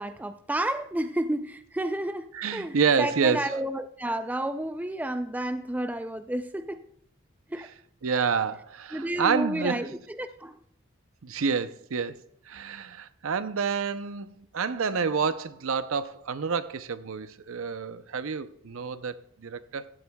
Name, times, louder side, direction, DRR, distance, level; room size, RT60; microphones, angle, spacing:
voice 1, 0.0-6.8 7.5-7.7 8.9-10.6, right 1 dB, 5° right, 0.3 m, -31 dB
voice 2, 2.3-3.4 8.0-9.9 11.2-12.2 12.5-14.3 14.5-19.9, right 5 dB, 70° right, 0.6 m, -28 dB
15.5 x 12.5 x 2.3 m
head